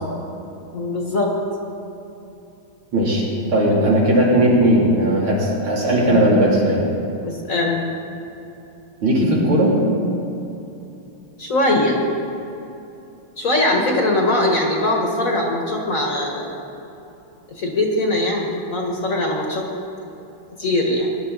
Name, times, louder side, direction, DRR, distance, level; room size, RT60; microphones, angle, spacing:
voice 1, 0.7-1.3 6.1-6.4 7.2-7.9 11.4-12.0 13.4-16.6 17.6-19.7 20.6-21.1, left 1 dB, 40° left, 0 dB, 1.7 m, -21 dB
voice 2, 2.9-6.8 9.0-9.7, right 1 dB, 75° right, -5 dB, 3.8 m, -17 dB
19.5 x 11.5 x 4.0 m, 2.9 s
omnidirectional pair, 2.3 m